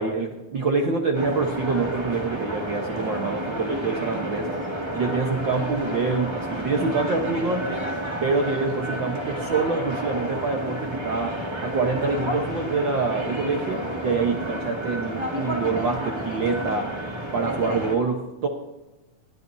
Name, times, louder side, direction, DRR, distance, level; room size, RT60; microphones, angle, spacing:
voice 1, 0.0-4.5 4.9-7.7 8.2-16.9 17.3-18.5, right 4 dB, 60° right, 2 dB, 1.3 m, -26 dB
sound 1, 1.1-18.0, equal, 10° right, 1.5 m, -31 dB
21.5 x 16.5 x 2.7 m, 1.0 s
omnidirectional pair, 3.5 m